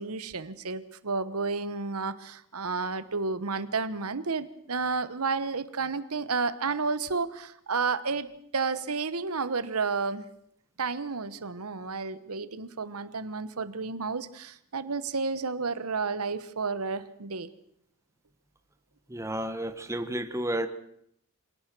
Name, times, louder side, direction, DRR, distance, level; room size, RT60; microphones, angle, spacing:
voice 1, 0.0-8.3 8.5-10.2 10.8-17.5, right 4 dB, 90° right, 15 dB, 1.2 m, -31 dB
voice 2, 19.1-20.7, right 1 dB, 15° right, 9 dB, 1.3 m, -31 dB
26.0 x 17.5 x 6.2 m, 0.70 s
head